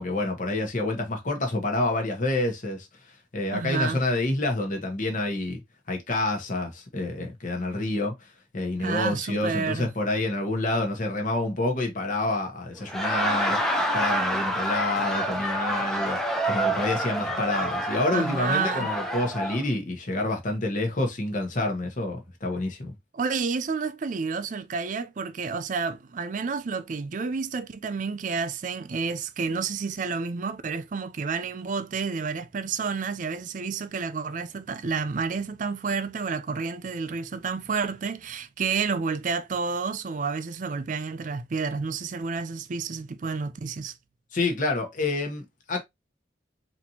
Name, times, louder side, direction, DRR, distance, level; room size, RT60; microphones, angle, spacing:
voice 1, 0.0-5.6 5.9-8.3 8.5-16.2 16.4-22.9 44.3-45.8, left 2 dB, 45° left, 1.1 m, -28 dB
voice 2, 3.5-4.0 8.8-9.9 18.1-18.9 23.1-43.9, right 5 dB, 45° right, 0.4 m, -30 dB
Laughter, 12.8-19.6, right 1 dB, ahead, 0.6 m, -28 dB
4.1 x 2.9 x 2.7 m
head